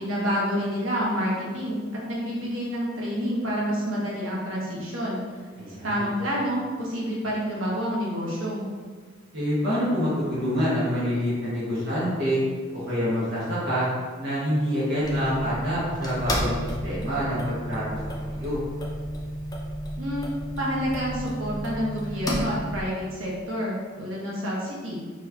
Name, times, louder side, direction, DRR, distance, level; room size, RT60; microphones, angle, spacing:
voice 1, 0.0-5.2 5.7-8.7 20.0-20.3 20.6-25.0, equal, 85° right, -5 dB, 1.2 m, -28 dB
voice 2, 5.6-6.1 9.3-12.4 12.7-13.9 14.2-18.6, equal, 60° right, -10 dB, 1.4 m, -26 dB
sound 1, 15.0-22.8, equal, 20° left, 0.6 m, -32 dB
4.6 x 3.3 x 2.8 m, 1.5 s
head